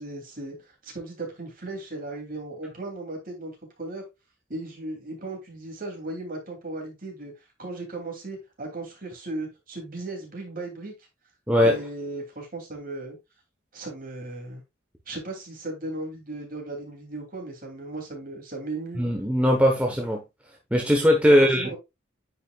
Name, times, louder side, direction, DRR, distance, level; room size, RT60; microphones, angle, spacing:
voice 1, 0.0-4.0 4.5-7.3 7.6-10.9 11.6-13.2 13.7-14.6 15.1-19.0 21.6-21.8, right 2 dB, 45° right, 2.7 m, -36 dB
voice 2, 11.5-11.8 19.0-20.2 20.7-21.7, equal, 5° right, 0.9 m, -20 dB
9.4 x 5.3 x 2.3 m
head